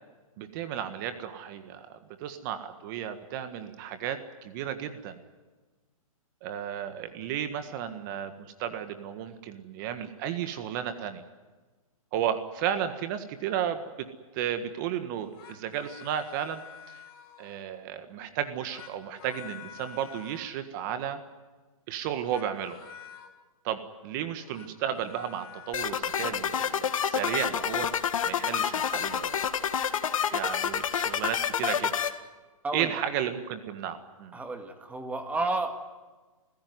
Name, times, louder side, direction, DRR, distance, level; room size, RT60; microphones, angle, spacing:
voice 1, 0.4-5.2 6.4-11.2 12.1-13.8 14.3-17.0 17.4-21.2 21.9-22.7 23.6-27.9 28.2-29.5 30.3-31.9 32.7-34.4, right 9 dB, 35° right, 9 dB, 1.7 m, -33 dB
sound 1, 15.2-17.7 18.5-20.6 22.1-23.3 24.4-26.0, left 8 dB, 40° left, 4.3 m, -48 dB
sound 2, 25.7-32.1, left 8 dB, 65° left, 2.0 m, -28 dB
voice 2, 32.6-33.0 34.3-35.7, right 2 dB, 10° right, 6 dB, 1.8 m, -31 dB
28.5 x 16.0 x 9.6 m, 1.3 s
hypercardioid pair, 150°, 18 cm